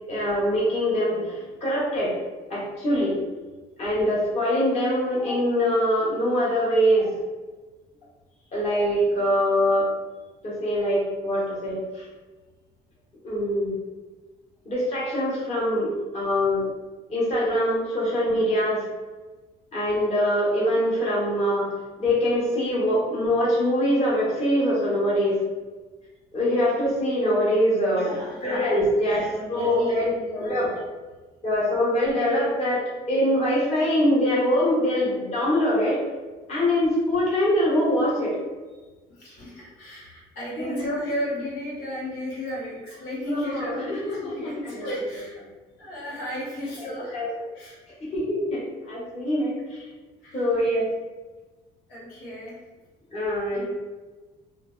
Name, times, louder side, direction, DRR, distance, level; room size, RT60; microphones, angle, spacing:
voice 1, 0.1-2.1 2.5-3.1 3.8-7.1 8.5-9.9 10.4-12.0 13.2-13.7 14.6-16.6 17.1-18.8 19.7-21.7 22.0-25.4 26.3-29.2 29.5-30.8 31.4-32.8 33.1-36.0 36.5-38.3 40.6-40.9 43.2-44.9 46.8-47.3 48.0-49.9 50.3-50.9 53.1-53.6, equal, 40° left, -7 dB, 1.1 m, -23 dB
voice 2, 27.9-28.4 29.0-30.7 39.2-45.4 45.8-47.2 47.5-47.8 50.2-50.4 51.9-52.5 53.5-53.6, equal, 90° left, -7 dB, 0.9 m, -34 dB
2.6 x 2.2 x 2.3 m, 1.3 s
cardioid pair, 110°, 17 cm